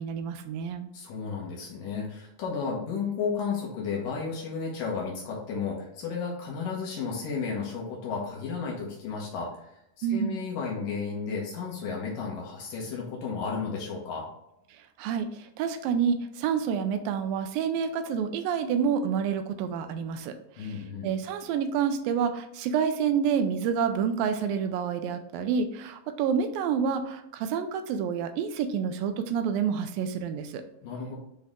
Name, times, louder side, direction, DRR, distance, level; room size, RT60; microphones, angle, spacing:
voice 1, 0.0-0.9 10.0-10.4 15.0-20.8 21.0-30.6, right 7 dB, 85° right, 8 dB, 2.5 m, -28 dB
voice 2, 0.9-9.7 10.0-14.3 20.6-21.1 30.8-31.2, left 5 dB, 75° left, -2 dB, 2.8 m, -33 dB
7.7 x 4.1 x 3.7 m, 0.79 s
omnidirectional pair, 4.0 m